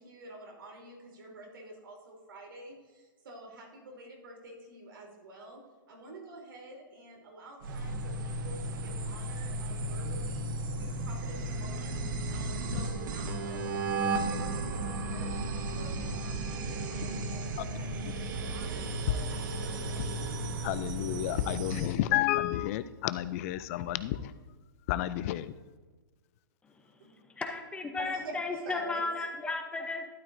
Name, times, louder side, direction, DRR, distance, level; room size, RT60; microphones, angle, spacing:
voice 1, 0.0-5.6 5.9-20.1 27.0-27.2 28.0-29.3, right 1 dB, 80° right, -1 dB, 3.2 m, -48 dB
sound 1, 7.6-22.0, right 2 dB, 60° right, 1.3 m, -34 dB
voice 2, 20.6-24.3 24.9-25.5, left 14 dB, 40° left, 15 dB, 0.4 m, -31 dB
voice 3, 27.4-30.1, left 3 dB, 10° left, 4 dB, 0.7 m, -34 dB
12.5 x 9.1 x 2.6 m, 1.3 s
hypercardioid pair, 135°, 12 cm